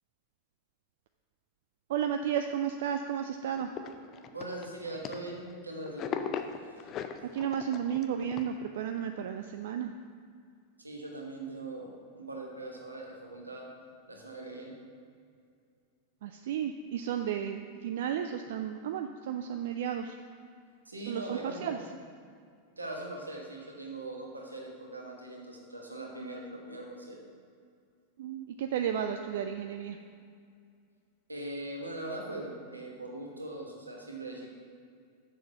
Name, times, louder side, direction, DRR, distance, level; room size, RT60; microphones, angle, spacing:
voice 1, 1.9-3.7 7.3-9.9 16.2-20.1 21.1-21.8 28.2-30.0, right 9 dB, 55° right, 7 dB, 0.3 m, -33 dB
sound 1, 3.6-5.6 5.9-8.5, left 7 dB, 30° left, 0.5 m, -39 dB
voice 2, 4.3-6.2 10.8-13.7 14.1-14.7 20.8-21.8 22.8-27.2 31.3-34.5, right 2 dB, 80° right, 0 dB, 1.3 m, -41 dB
7.0 x 6.2 x 5.7 m, 2.3 s
figure-of-eight pair, 90°, 0 cm